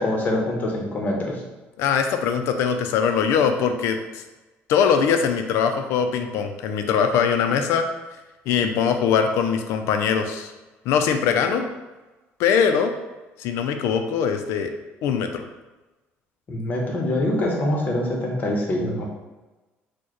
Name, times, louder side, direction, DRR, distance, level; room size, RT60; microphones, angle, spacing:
voice 1, 0.0-1.4 16.5-19.1, left 1 dB, 35° left, -1 dB, 0.9 m, -24 dB
voice 2, 1.8-4.2 4.7-7.9 8.5-10.5 10.9-11.7 12.4-12.9 13.4-14.7 15.0-15.4, left 7 dB, 80° left, 6 dB, 0.4 m, -22 dB
4.5 x 2.2 x 3.0 m, 1.1 s
cardioid pair, 125°, 5 cm